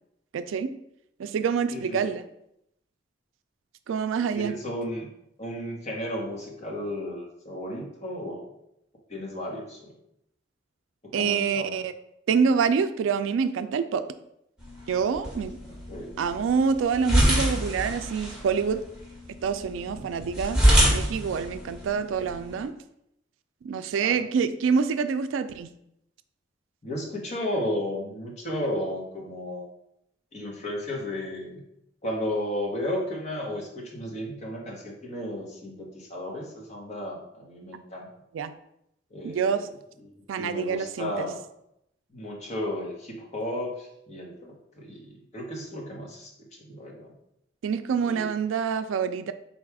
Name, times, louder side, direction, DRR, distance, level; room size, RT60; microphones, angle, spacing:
voice 1, 0.3-0.7 1.2-2.2 3.9-4.6 11.1-11.9 12.3-14.0 14.9-15.6 16.2-18.8 19.4-22.7 23.6-25.7 38.3-38.6 39.2-39.7 40.3-41.3 47.6-49.3, right 6 dB, 85° right, 11 dB, 0.3 m, -26 dB
voice 2, 1.7-2.1 4.3-5.1 5.4-8.5 9.1-9.9 11.1-11.8 15.9-16.1 19.9-20.0 24.0-24.2 26.8-29.7 30.3-31.6 32.0-38.1 39.1-39.7 40.4-41.4 42.1-46.3 46.6-47.1 48.0-48.3, left 1 dB, 40° left, -1 dB, 1.0 m, -34 dB
sound 1, 14.6-22.6, equal, 5° right, 1.2 m, -26 dB
4.1 x 2.3 x 4.6 m, 0.78 s
head